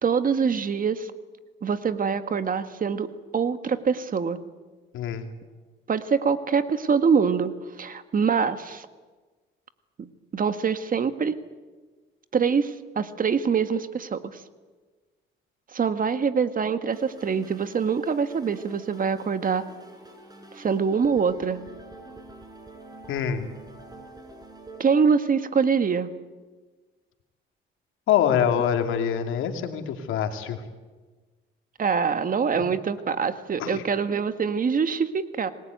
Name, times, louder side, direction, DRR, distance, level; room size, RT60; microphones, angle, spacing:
voice 1, 0.0-1.1 1.6-4.4 5.9-8.9 10.0-11.4 12.3-14.4 15.7-19.7 20.6-21.7 24.8-26.1 31.8-35.5, right 6 dB, 45° right, 10 dB, 1.8 m, -24 dB
voice 2, 4.9-5.3 23.1-23.5 28.1-30.6 32.5-32.6 33.6-33.8, left 9 dB, 90° left, 6 dB, 2.7 m, -25 dB
sound 1, 16.9-24.9, right 2 dB, 20° right, 6.5 m, -46 dB
26.0 x 20.0 x 9.4 m, 1.3 s
cardioid pair, 90°, 20 cm